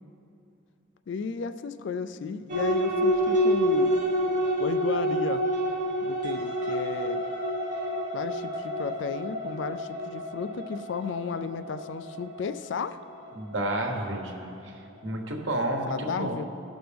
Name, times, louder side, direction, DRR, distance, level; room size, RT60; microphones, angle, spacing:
voice 1, 1.1-3.9 4.6-5.5 6.0-7.2 8.1-13.0 15.9-16.5, left 5 dB, 60° left, 11 dB, 0.3 m, -34 dB
sound 1, 2.5-14.4, equal, 35° right, 1.3 m, -28 dB
voice 2, 13.3-14.3 14.6-14.7 15.0-16.4, right 1 dB, 65° right, 1 dB, 1.2 m, -30 dB
17.0 x 6.1 x 3.4 m, 2.6 s
head